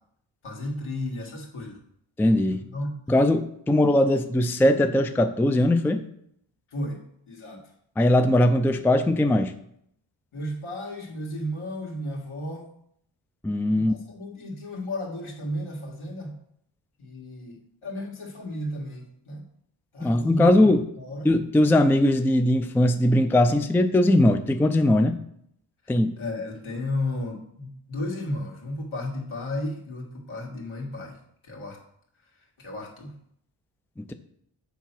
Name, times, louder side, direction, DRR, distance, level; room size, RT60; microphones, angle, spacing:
voice 1, 0.4-1.8 2.5-2.9 6.7-7.0 7.3-7.6 10.3-12.7 13.7-16.4 17.0-19.5 19.9-20.7 21.0-21.3 26.2-31.2 31.4-31.8 32.6-33.2, left 1 dB, 75° left, -1 dB, 2.2 m, -33 dB
voice 2, 2.2-2.6 3.1-6.1 8.0-9.5 13.4-13.9 20.0-20.8 21.2-25.2 25.9-26.2 34.0-34.1, left 1 dB, 5° left, 8 dB, 0.4 m, -20 dB
7.1 x 4.6 x 6.0 m, 0.71 s
wide cardioid pair, 80°, 50 cm